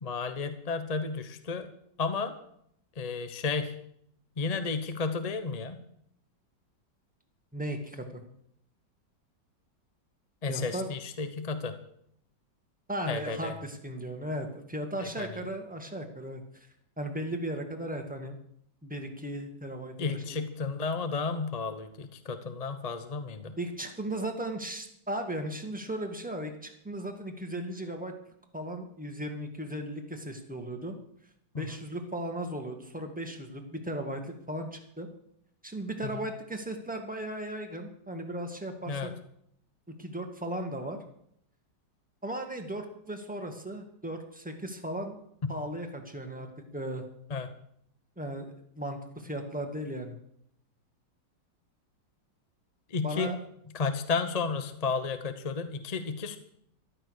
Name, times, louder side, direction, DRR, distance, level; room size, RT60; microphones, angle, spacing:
voice 1, 0.0-1.7 2.0-2.3 3.0-3.7 4.4-5.8 10.4-11.7 13.1-13.5 15.2-15.5 20.0-23.6 31.5-31.7 36.1-36.2 38.9-39.1 45.4-45.5 47.3-47.5 52.9-53.3 53.7-56.4, left 4 dB, 30° left, 9 dB, 0.8 m, -32 dB
voice 2, 7.5-8.2 10.5-10.9 12.9-16.7 17.0-18.4 18.8-20.2 23.6-28.1 28.5-31.0 31.6-35.1 35.6-39.2 39.9-41.0 42.2-45.2 45.5-47.0 48.2-50.2 53.0-53.4, right 1 dB, 5° right, 4 dB, 1.8 m, -36 dB
14.0 x 12.0 x 6.5 m, 0.71 s
omnidirectional pair, 2.0 m